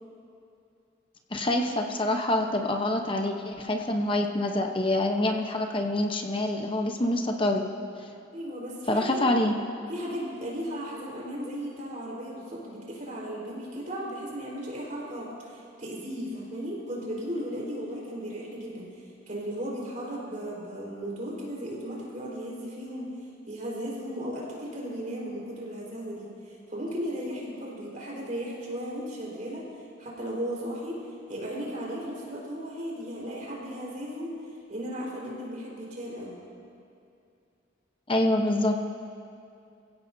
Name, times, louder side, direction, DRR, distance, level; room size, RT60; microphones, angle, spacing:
voice 1, 1.3-7.6 8.9-9.5 38.1-38.8, left 1 dB, 25° left, 3 dB, 0.9 m, -26 dB
voice 2, 8.3-9.2 9.9-23.1 23.5-29.7 30.0-31.0 31.3-34.3 34.7-36.4, equal, 40° right, -5 dB, 4.5 m, -36 dB
27.0 x 16.5 x 2.8 m, 2.6 s
head